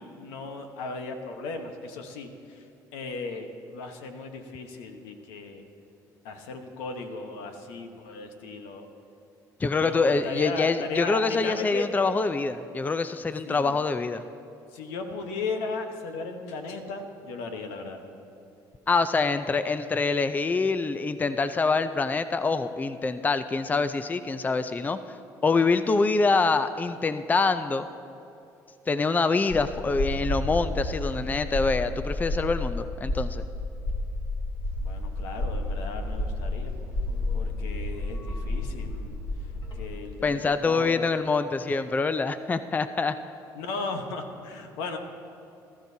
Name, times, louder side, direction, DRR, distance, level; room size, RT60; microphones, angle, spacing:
voice 1, 0.2-2.6 2.9-5.6 6.2-8.9 9.8-11.9 13.4-13.8 14.7-18.0 34.8-36.7 37.3-39.2 39.7-41.1 43.5-45.0, left 3 dB, 90° left, 5 dB, 1.1 m, -36 dB
voice 2, 9.6-14.2 18.9-25.0 25.4-27.9 28.9-33.4 40.2-43.2, left 4 dB, 20° left, 11 dB, 0.5 m, -25 dB
sound 1, 29.5-40.0, left 2 dB, 60° left, 3.2 m, -31 dB
19.0 x 13.0 x 2.8 m, 2.7 s
supercardioid pair, 90°, 8 cm